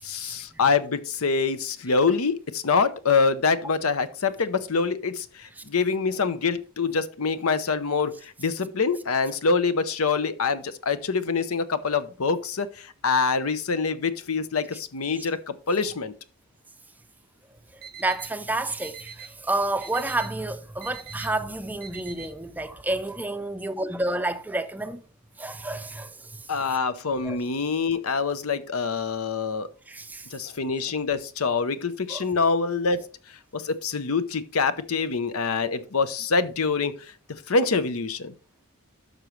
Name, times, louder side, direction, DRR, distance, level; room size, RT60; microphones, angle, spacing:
voice 1, 0.0-16.1 26.5-29.7 30.3-33.1 33.5-36.9 37.5-38.3, left 4 dB, 80° left, 0.7 m, -25 dB
Alarm, 17.6-22.6, right 7 dB, 45° right, 0.6 m, -45 dB
voice 2, 17.7-25.0 25.4-26.5 27.2-27.4 29.9-30.3 32.1-32.3, right 2 dB, 10° right, 0.4 m, -30 dB
12.0 x 6.2 x 3.1 m
head